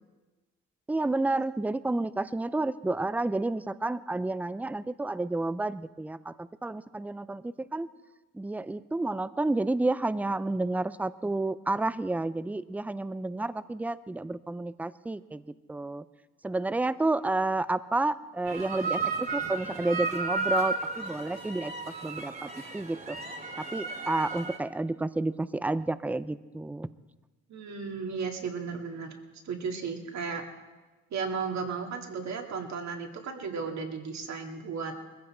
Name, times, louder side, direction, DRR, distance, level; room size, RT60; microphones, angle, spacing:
voice 1, 0.9-7.9 8.3-15.4 15.7-16.0 16.4-21.7 22.0-23.2 23.6-26.9, right 2 dB, 5° right, 15 dB, 0.5 m, -30 dB
sound 1, 18.5-24.6, right 3 dB, 30° right, 2.4 m, -33 dB
voice 2, 27.5-29.2 29.4-30.4 31.1-34.9, right 5 dB, 65° right, 3 dB, 2.2 m, -34 dB
20.5 x 15.0 x 4.4 m, 1.2 s
cardioid pair, 90°, 30 cm